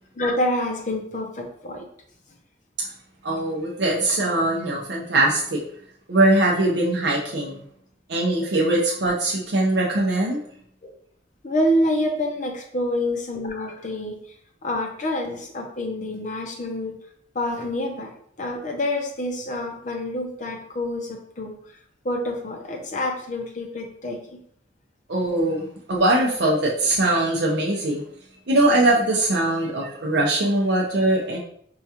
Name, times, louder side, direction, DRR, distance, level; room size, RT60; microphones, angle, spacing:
voice 1, 0.2-1.9 10.8-10.9 11.4-14.2 14.6-16.9 17.3-18.1 18.4-21.8 22.0-24.4, left 1 dB, 45° left, 3 dB, 0.6 m, -27 dB
voice 2, 3.2-5.6 6.1-7.6 8.1-10.4 25.1-28.0 28.5-31.4, right 2 dB, 65° right, -2 dB, 0.6 m, -21 dB
4.5 x 2.3 x 2.8 m, 0.65 s
head